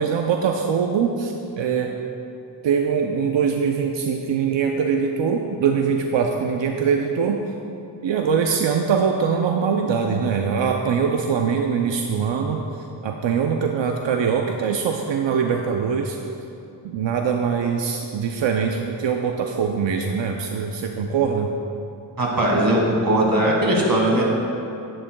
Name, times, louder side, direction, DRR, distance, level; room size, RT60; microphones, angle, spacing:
voice 1, 0.0-1.9 2.6-7.4 8.0-12.6 13.0-16.2 16.8-21.5, right 6 dB, 90° right, 3 dB, 0.6 m, -22 dB
voice 2, 22.2-24.2, right 1 dB, 50° right, -2 dB, 1.9 m, -19 dB
10.5 x 10.5 x 2.2 m, 2.8 s
wide cardioid pair, 65°, 43 cm